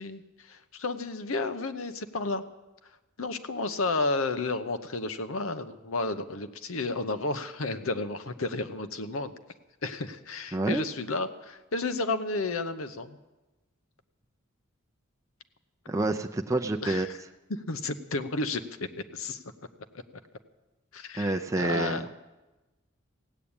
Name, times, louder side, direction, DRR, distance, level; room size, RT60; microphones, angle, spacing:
voice 1, 0.0-2.4 3.2-9.4 9.8-13.2 16.8-17.1 17.5-18.6 19.1-19.4 20.9-22.0, left 3 dB, 75° left, 10 dB, 0.9 m, -32 dB
voice 2, 10.5-10.8 15.9-17.1 21.2-22.1, right 2 dB, 15° right, 4 dB, 0.5 m, -28 dB
16.5 x 8.4 x 8.8 m, 1.1 s
head